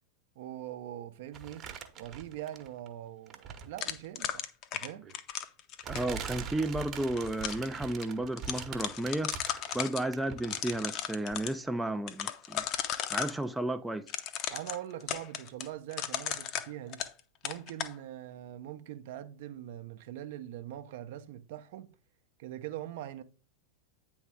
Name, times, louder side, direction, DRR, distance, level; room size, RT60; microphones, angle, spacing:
voice 1, 0.4-4.4 4.7-5.1 14.5-17.0 17.4-21.9 22.4-23.2, right 12 dB, 50° right, 0.6 m, -42 dB
sound 1, 1.3-2.9 3.3-4.0 5.0-5.1 5.8-10.9 11.3-11.4, right 7 dB, 30° right, 0.9 m, -43 dB
sound 2, 3.8-6.2 6.9-7.7 8.0-8.1 8.4-10.0 10.4-11.5 12.1-13.4 14.1-17.2 17.4-17.9, left 10 dB, 40° left, 0.6 m, -35 dB
voice 2, 5.9-12.7 13.1-14.1, right 1 dB, 5° right, 0.4 m, -33 dB
8.9 x 3.6 x 4.6 m
figure-of-eight pair, 90°, 0 cm